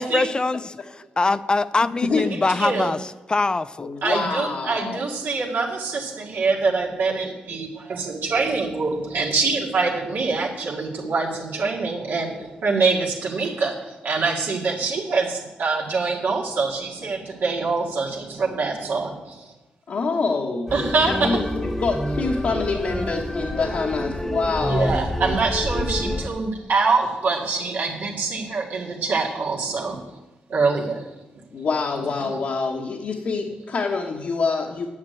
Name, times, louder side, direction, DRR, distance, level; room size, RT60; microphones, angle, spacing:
voice 1, 0.0-3.9, left 3 dB, 30° left, 14 dB, 0.4 m, -23 dB
voice 2, 2.2-2.9 4.0-19.5 20.7-21.4 24.5-30.1 30.5-31.0 32.2-32.4, right 4 dB, 80° right, -2 dB, 2.0 m, -25 dB
voice 3, 3.8-5.1 19.9-20.7 21.1-25.0 31.5-34.9, left 4 dB, 65° left, -1 dB, 1.3 m, -26 dB
sound 1, 20.7-26.3, left 1 dB, 15° left, 1.2 m, -27 dB
9.6 x 6.7 x 7.9 m, 1.1 s
cardioid pair, 85°, 3 cm